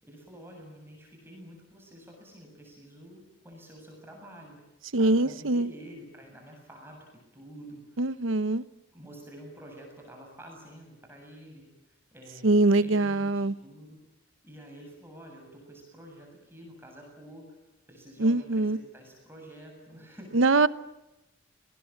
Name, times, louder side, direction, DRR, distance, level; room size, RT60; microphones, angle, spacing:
voice 1, 0.0-4.6 5.0-7.1 7.3-8.0 8.9-14.0 14.4-17.5 17.9-20.7, right 1 dB, 10° right, 7.5 m, -48 dB
voice 2, 4.9-5.7 8.0-8.6 12.4-13.5 18.2-18.8 20.3-20.7, right 2 dB, 85° right, 0.9 m, -23 dB
27.5 x 20.0 x 8.7 m
head